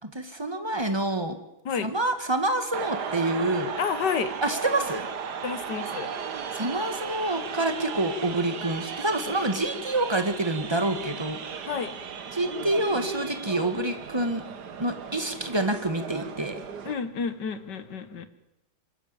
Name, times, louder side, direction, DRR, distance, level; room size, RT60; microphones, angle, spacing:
voice 1, 0.0-1.4 1.8-3.7 4.4-5.1 6.5-11.7 12.3-14.4 14.8-16.6, right 1 dB, 15° right, 8 dB, 1.8 m, -27 dB
sound 1, 2.7-16.9, right 6 dB, 65° right, 1.9 m, -36 dB
voice 2, 3.8-4.3 5.4-6.1 11.7-12.0 16.9-18.3, left 6 dB, 70° left, 12 dB, 2.0 m, -30 dB
25.0 x 13.5 x 8.9 m, 0.91 s
omnidirectional pair, 2.0 m